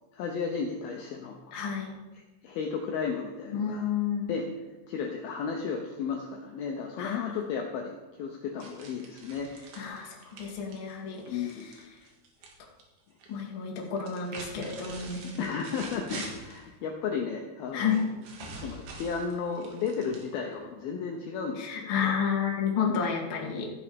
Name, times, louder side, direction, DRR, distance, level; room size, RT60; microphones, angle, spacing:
voice 1, 0.1-1.8 2.4-3.8 4.3-4.5 4.9-9.5 9.8-9.9 11.3-11.7 15.2-18.0 18.5-22.1 22.9-23.1, left 6 dB, 85° left, 2 dB, 2.1 m, -34 dB
voice 2, 1.5-1.9 3.5-4.3 7.0-7.4 9.8-11.4 13.3-15.4 16.1-16.2 17.7-18.0 21.6-23.7, left 7 dB, 55° left, -2 dB, 1.4 m, -31 dB
sound 1, 8.6-12.5 12.8-13.4 14.0-16.7 17.9-20.6, right 3 dB, 70° right, 3.9 m, -45 dB
14.5 x 7.0 x 5.1 m, 1.2 s
omnidirectional pair, 5.6 m